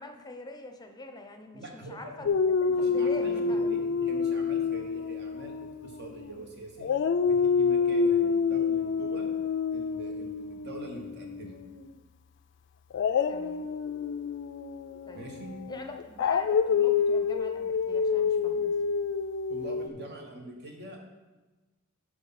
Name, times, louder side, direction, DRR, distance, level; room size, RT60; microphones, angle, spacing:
voice 1, 0.0-2.3 2.7-3.8 13.3-13.7 15.0-15.2 15.7-18.9, left 2 dB, 20° left, 5 dB, 0.7 m, -43 dB
voice 2, 1.5-2.3 2.7-9.3 9.7-11.6 15.1-15.6 19.5-21.0, right 2 dB, 50° right, 1 dB, 1.3 m, -44 dB
Dog, 2.3-6.4 6.8-11.8 12.9-19.9, left 6 dB, 55° left, 0.3 m, -28 dB
11.5 x 4.7 x 4.2 m, 1.2 s
head